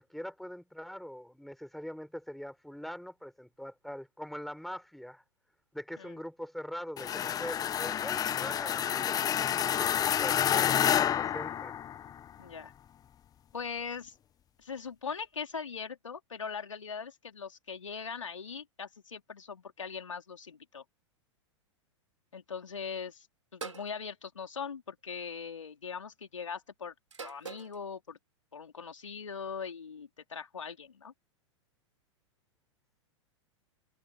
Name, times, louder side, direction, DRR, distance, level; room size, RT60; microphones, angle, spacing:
voice 1, 0.0-5.2 5.7-11.8, equal, ahead, 6.0 m, -43 dB
sound 1, 7.0-12.2, left 9 dB, 25° left, 0.9 m, -29 dB
voice 2, 12.4-12.7 13.5-14.2 14.6-20.8 22.3-23.3 23.5-26.9 27.2-28.2 28.5-31.1, left 6 dB, 85° left, 3.6 m, -40 dB
sound 2, 23.6-23.9 25.1-25.5 27.1-27.8, right 5 dB, 85° right, 5.5 m, -43 dB
open air
hypercardioid pair, 100°, 16 cm